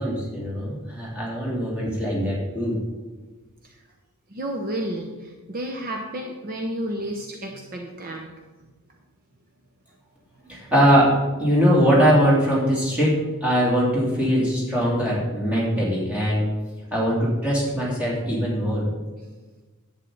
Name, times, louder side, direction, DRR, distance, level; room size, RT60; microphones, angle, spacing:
voice 1, 0.0-2.8 10.5-16.5 16.9-18.9, equal, 5° right, -6 dB, 2.9 m, -21 dB
voice 2, 4.3-8.3, right 1 dB, 40° right, 2 dB, 0.8 m, -31 dB
11.0 x 8.3 x 3.9 m, 1.3 s
head